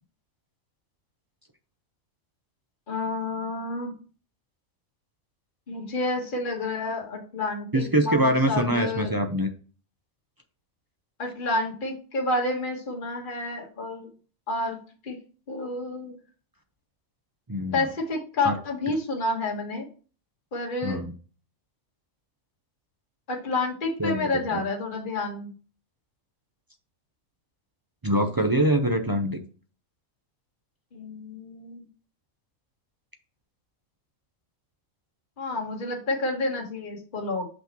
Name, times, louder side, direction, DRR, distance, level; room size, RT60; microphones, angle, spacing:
voice 1, 2.9-3.9 5.7-9.1 11.2-14.1 14.5-14.8 15.0-15.2 15.5-16.1 17.7-19.9 20.5-21.0 23.3-25.5 30.9-31.9 35.4-37.5, left 2 dB, 35° left, -1 dB, 1.6 m, -29 dB
voice 2, 7.7-9.5 17.5-17.8 18.4-18.5 20.8-21.1 24.0-24.3 28.0-29.4, right 1 dB, 25° right, 5 dB, 0.4 m, -24 dB
6.2 x 5.7 x 3.0 m, 0.37 s
omnidirectional pair, 1.4 m